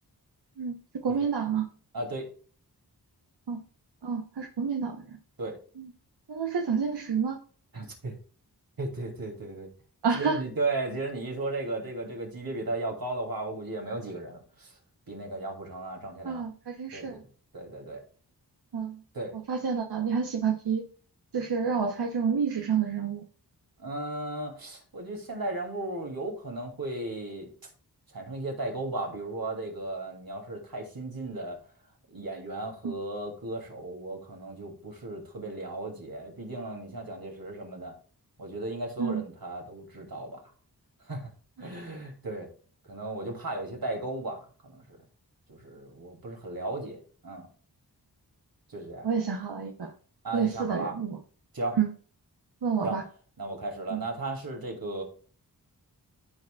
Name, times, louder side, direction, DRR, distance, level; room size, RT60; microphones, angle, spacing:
voice 1, 1.0-1.7 3.5-3.6 4.0-5.2 5.8-5.9 6.3-7.4 10.0-10.4 16.2-17.2 18.7-19.0 19.5-20.8 21.3-23.2 32.8-32.9 39.0-39.2 49.0-49.9 50.3-51.2 51.8-51.9 52.6-53.0 53.9-54.0, right 6 dB, 80° right, 3 dB, 1.0 m, -29 dB
voice 2, 1.9-2.3 5.4-5.6 7.7-8.2 8.8-9.7 10.2-14.8 15.1-16.4 16.9-17.3 17.5-18.0 19.1-19.3 23.8-27.5 28.1-31.6 32.1-37.9 38.4-40.4 41.0-41.3 41.6-42.5 42.9-45.0 45.5-47.5 48.7-49.1 50.2-51.0 51.5-51.8 52.8-53.0 53.4-55.0, right 2 dB, 65° right, 1 dB, 2.9 m, -35 dB
14.0 x 4.9 x 2.4 m, 0.42 s
cardioid pair, 50°, 39 cm